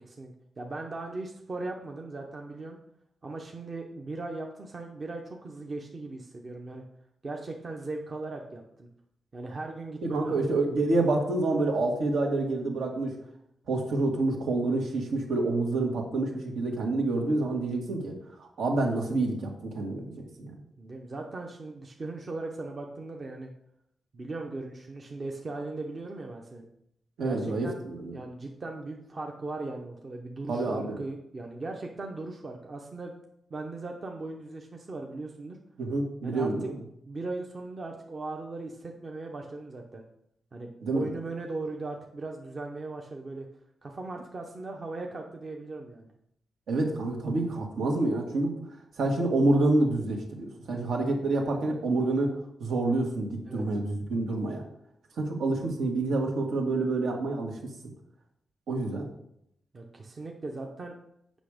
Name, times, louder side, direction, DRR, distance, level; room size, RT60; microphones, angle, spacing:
voice 1, 0.0-2.8 3.2-6.8 7.2-8.9 9.3-10.6 20.8-23.5 24.1-26.7 27.2-27.8 28.1-33.1 33.5-35.6 36.2-36.7 37.0-40.0 40.5-43.5 43.8-46.1 53.4-53.7 59.7-60.9, right 2 dB, 30° right, 2 dB, 0.8 m, -38 dB
voice 2, 10.1-13.2 13.7-20.6 27.2-28.1 30.5-31.0 35.8-36.8 40.8-41.1 46.7-48.6 49.0-54.6 55.2-57.7 58.7-59.1, right 2 dB, 75° right, 1 dB, 2.0 m, -28 dB
8.2 x 6.2 x 5.1 m, 0.74 s
wide cardioid pair, 165°, 0 cm